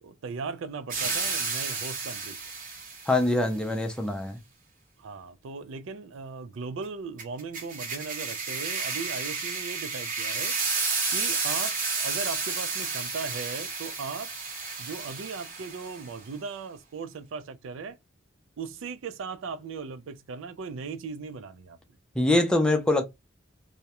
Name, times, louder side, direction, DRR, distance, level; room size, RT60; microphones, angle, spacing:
voice 1, 0.0-2.4 5.0-10.5 11.1-14.3 14.8-18.0 18.6-21.8, right 5 dB, 70° right, 0.4 m, -38 dB
sound 1, 0.9-3.2 7.2-16.1, right 4 dB, 40° right, 0.8 m, -31 dB
voice 2, 3.1-4.4 22.2-23.0, left 2 dB, 5° left, 0.4 m, -24 dB
2.3 x 2.0 x 2.8 m
head